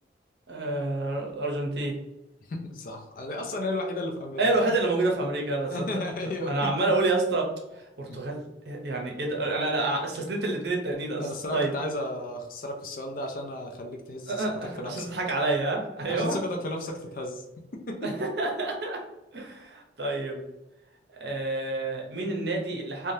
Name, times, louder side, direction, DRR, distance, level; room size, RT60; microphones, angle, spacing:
voice 1, 0.5-1.9 4.4-5.7 6.4-7.5 7.8-11.7 14.3-16.4 18.0-19.0 19.3-20.5 21.2-23.1, right 2 dB, 65° right, 0 dB, 0.7 m, -28 dB
voice 2, 2.5-4.4 5.7-6.7 8.1-8.2 11.2-14.4 14.8-15.1 16.1-17.5 17.9-18.1, left 1 dB, 50° left, 3 dB, 0.4 m, -33 dB
3.3 x 2.2 x 2.6 m, 0.96 s
head